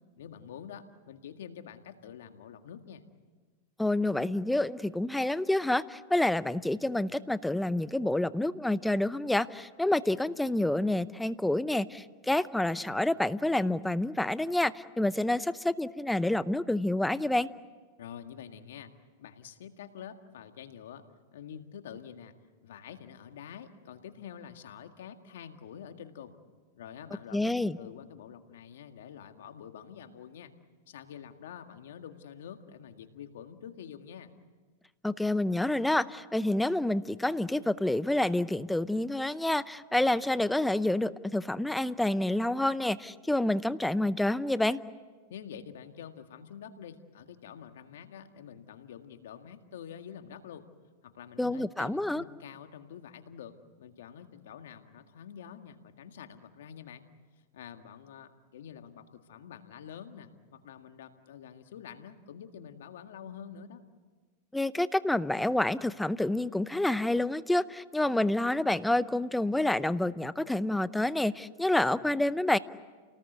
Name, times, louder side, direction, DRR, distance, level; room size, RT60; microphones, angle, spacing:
voice 1, 0.2-3.0 18.0-18.9 19.2-21.0 21.3-22.3 22.6-26.3 26.8-30.5 30.9-34.3 45.3-50.6 51.0-57.0 57.5-63.8, left 8 dB, 80° left, 7 dB, 1.9 m, -47 dB
voice 2, 3.8-17.5 27.3-27.8 35.0-44.8 51.4-52.2 64.5-72.6, left 1 dB, 5° left, 15 dB, 0.7 m, -28 dB
29.5 x 19.0 x 8.1 m, 1.4 s
hypercardioid pair, 120°, 0 cm